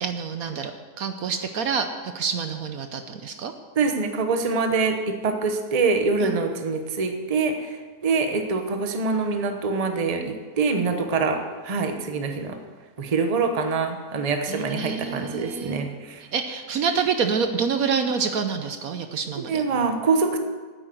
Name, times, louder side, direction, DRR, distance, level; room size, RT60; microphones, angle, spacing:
voice 1, 0.0-0.7 1.0-1.9 2.1-3.5 6.2-6.4 14.5-15.8 16.3-19.6, right 6 dB, 65° right, 7 dB, 1.1 m, -27 dB
voice 2, 3.8-7.8 8.0-12.6 13.0-16.2 19.5-20.4, right 4 dB, 30° right, 5 dB, 0.9 m, -24 dB
9.6 x 8.7 x 7.7 m, 1.5 s
omnidirectional pair, 1.7 m